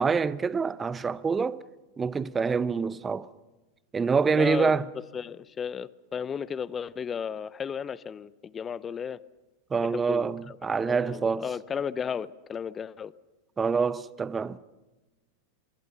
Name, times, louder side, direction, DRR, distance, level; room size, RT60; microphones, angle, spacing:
voice 1, 0.0-1.6 2.0-3.3 3.9-4.8 9.7-11.5 13.6-14.6, right 5 dB, 15° right, 0.7 m, -26 dB
voice 2, 4.3-9.2 9.8-10.6 10.8-13.1, left 7 dB, 20° left, 0.7 m, -34 dB
25.5 x 24.5 x 5.8 m
figure-of-eight pair, 90°, 0 cm